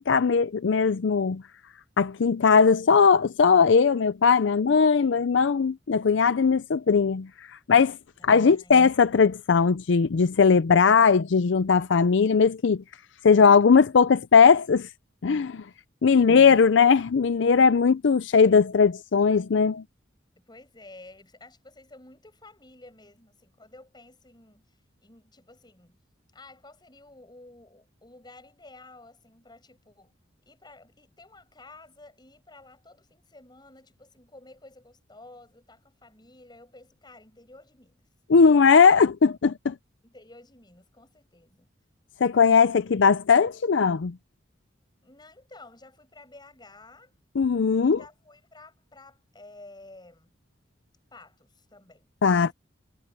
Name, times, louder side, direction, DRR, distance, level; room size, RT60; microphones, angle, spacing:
voice 1, 0.1-1.4 2.0-7.3 7.7-8.0 8.2-12.8 13.2-14.9 15.2-15.6 16.0-19.8 38.3-39.7 42.2-44.1 47.4-48.0 52.2-52.5, left 5 dB, 70° left, 0.5 m, -19 dB
voice 2, 8.2-8.8 20.5-24.7 25.0-26.0 26.3-30.1 30.5-38.0 38.9-39.1 40.0-41.7 45.0-47.1 47.8-50.3 51.1-52.5, left 2 dB, 25° left, 6.9 m, -51 dB
head